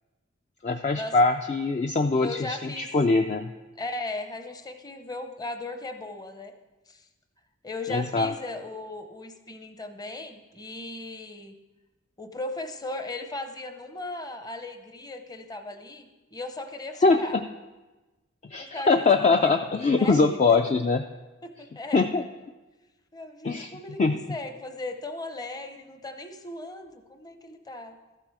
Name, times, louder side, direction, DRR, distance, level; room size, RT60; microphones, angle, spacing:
voice 1, 0.6-3.5 7.9-8.3 17.0-17.4 18.5-21.0 21.9-22.2 23.4-23.7 24.0-24.2, left 3 dB, 35° left, 6 dB, 0.3 m, -22 dB
voice 2, 2.1-2.9 3.8-6.5 6.9-7.1 7.6-11.5 12.2-17.4 18.6-19.6 20.0-20.6 21.4-22.1 23.1-28.0, left 2 dB, 20° left, 7 dB, 0.7 m, -37 dB
13.0 x 7.6 x 4.7 m, 1.2 s
head